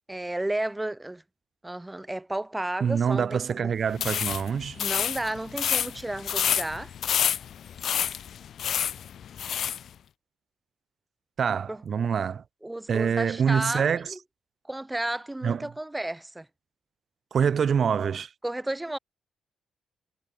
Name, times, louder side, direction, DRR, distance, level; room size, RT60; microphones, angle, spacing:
voice 1, 0.1-1.2 1.6-3.7 4.8-6.9 11.7-11.8 12.6-14.2 14.6-16.5 18.4-19.0, right 1 dB, 15° right, 2.9 m, -32 dB
voice 2, 2.8-4.8 11.4-12.4 12.9-14.1 15.4-15.7 17.3-18.3, right 7 dB, 60° right, 3.1 m, -25 dB
sound 1, 3.9-9.8, left 9 dB, 70° left, 0.9 m, -28 dB
supercardioid pair, 65°, 0 cm